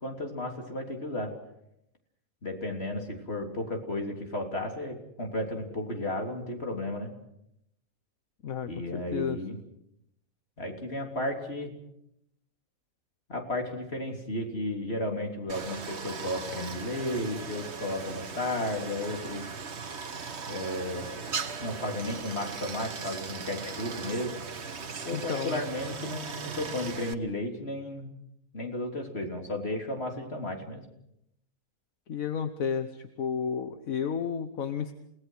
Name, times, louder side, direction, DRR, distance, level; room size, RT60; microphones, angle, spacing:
voice 1, 0.0-1.3 2.4-7.1 8.7-9.6 10.6-11.7 13.3-19.5 20.5-21.1 21.6-24.4 25.1-28.1 28.5-30.8, left 1 dB, 45° left, 2 dB, 3.6 m, -33 dB
voice 2, 8.4-9.4 25.1-25.6 32.1-34.9, left 7 dB, 75° left, 9 dB, 1.5 m, -32 dB
Stream, 15.5-27.1, right 5 dB, 50° right, 1.5 m, -38 dB
29.5 x 18.5 x 6.3 m, 0.78 s
omnidirectional pair, 1.5 m